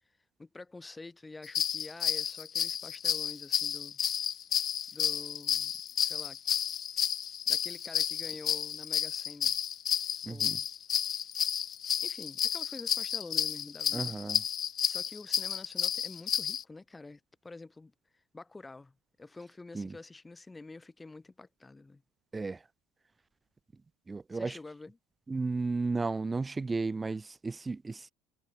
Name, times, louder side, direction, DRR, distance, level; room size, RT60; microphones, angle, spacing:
voice 1, 0.4-4.0 4.9-5.7 6.0-6.4 7.5-9.6 10.2-10.7 12.0-14.1 14.8-22.0 24.3-25.0, left 3 dB, 15° left, 7.3 m, -47 dB
sound 1, 1.4-16.6, left 9 dB, 40° left, 2.5 m, -31 dB
voice 2, 10.2-10.6 13.9-14.4 19.7-19.9 22.3-22.6 24.1-24.6 25.3-28.1, right 3 dB, 20° right, 4.8 m, -34 dB
hypercardioid pair, 70°, 0 cm